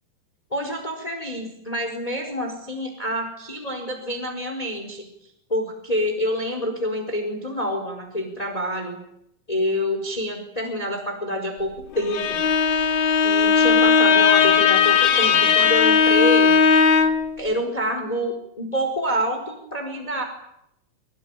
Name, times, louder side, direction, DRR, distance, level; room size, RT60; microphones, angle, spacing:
voice 1, 0.5-9.0 9.5-12.4 13.2-16.6 17.4-20.2, equal, 10° left, 4 dB, 4.5 m, -27 dB
Bowed string instrument, 12.0-17.3, left 6 dB, 75° left, 3.7 m, -17 dB
26.0 x 23.5 x 9.1 m, 0.79 s
omnidirectional pair, 4.2 m